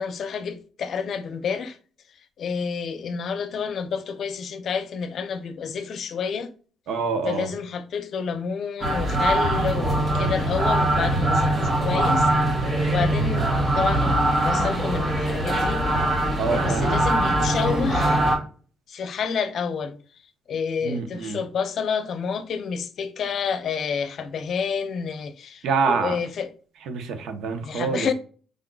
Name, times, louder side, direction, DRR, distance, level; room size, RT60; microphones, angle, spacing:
voice 1, 0.0-1.8 2.4-6.5 7.2-12.3 12.9-14.2 14.4-15.8 16.5-18.2 18.9-20.0 20.5-26.5 27.6-28.1, left 6 dB, 60° left, 0.6 m, -29 dB
voice 2, 6.9-7.5 16.4-17.0 20.8-21.4 25.6-26.2 26.9-28.1, right 5 dB, 80° right, 0.8 m, -26 dB
sound 1, 8.8-18.4, right 1 dB, 35° right, 2.0 m, -22 dB
5.1 x 3.7 x 2.3 m
cardioid pair, 90°, 0 cm